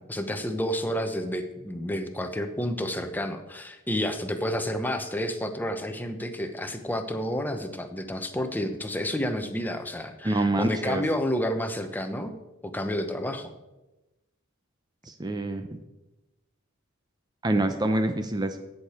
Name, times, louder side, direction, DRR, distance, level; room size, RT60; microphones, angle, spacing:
voice 1, 0.1-12.3 12.6-13.5, equal, 10° left, 6 dB, 0.8 m, -30 dB
voice 2, 10.2-11.0 15.1-15.8 17.4-18.6, right 2 dB, 20° right, 8 dB, 0.6 m, -26 dB
16.5 x 6.7 x 4.3 m, 1.0 s
head